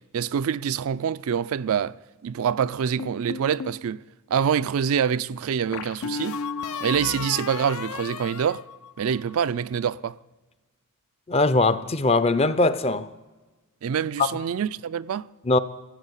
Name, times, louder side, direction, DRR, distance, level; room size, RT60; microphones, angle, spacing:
voice 1, 0.1-4.0 4.3-6.4 6.8-8.6 9.0-10.2 13.8-15.3, right 7 dB, 70° right, 0.4 m, -26 dB
sound 1, 3.0-3.8 5.7-9.3, left 5 dB, 75° left, 0.6 m, -34 dB
voice 2, 11.3-13.1 14.2-14.3 15.5-15.6, left 3 dB, 25° left, 0.5 m, -20 dB
16.0 x 8.2 x 8.1 m
head